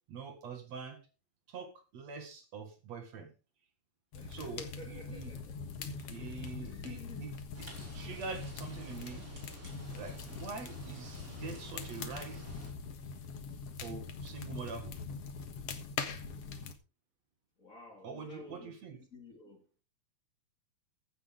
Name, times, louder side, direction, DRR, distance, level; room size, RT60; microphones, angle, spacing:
voice 1, 0.1-1.1 1.5-3.3 4.3-5.3 6.1-7.3 7.6-7.7 7.9-9.3 9.9-12.4 13.8-15.0 18.0-19.0, right 5 dB, 60° right, 3.1 m, -44 dB
sound 1, 4.1-16.7, left 5 dB, 55° left, 2.4 m, -43 dB
voice 2, 4.1-7.3 15.9-16.8 17.6-19.7, left 3 dB, 30° left, 2.5 m, -53 dB
sound 2, 7.5-12.7, right 1 dB, 25° right, 4.6 m, -50 dB
15.5 x 10.5 x 3.8 m
omnidirectional pair, 3.5 m